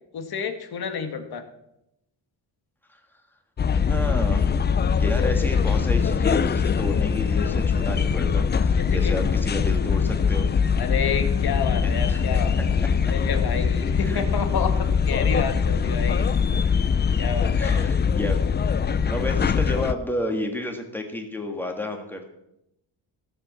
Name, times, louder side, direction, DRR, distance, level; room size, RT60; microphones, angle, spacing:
voice 1, 0.1-1.4 8.8-9.2 10.7-12.8 13.1-16.3 17.2-17.9, left 6 dB, 55° left, 7 dB, 1.8 m, -30 dB
sound 1, 3.6-19.9, left 6 dB, 25° left, 0.4 m, -22 dB
voice 2, 3.9-4.5 5.0-10.5 11.8-12.9 14.0-14.3 17.5-18.4 19.1-22.3, left 1 dB, 5° left, 3 dB, 1.8 m, -31 dB
16.5 x 7.2 x 7.3 m, 0.84 s
wide cardioid pair, 160°, 44 cm